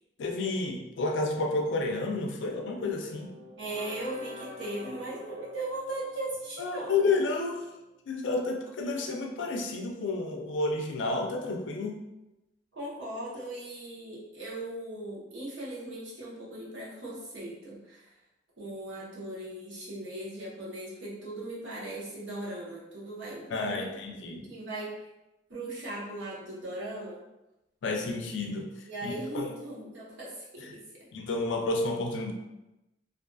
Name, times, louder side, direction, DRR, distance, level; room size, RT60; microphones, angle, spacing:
voice 1, 0.2-3.3 6.6-7.7 8.1-12.0 23.5-24.5 27.8-28.7 29.0-29.5 31.1-32.3, left 3 dB, 75° left, 3 dB, 0.4 m, -30 dB
sound 1, 2.7-7.7, left 2 dB, 45° right, 0.7 m, -47 dB
voice 2, 3.6-7.0 12.7-18.2 18.6-23.9 24.3-24.9 25.5-27.2 28.9-31.1, right 1 dB, 80° right, -6 dB, 0.8 m, -38 dB
2.5 x 2.4 x 2.2 m, 0.95 s
head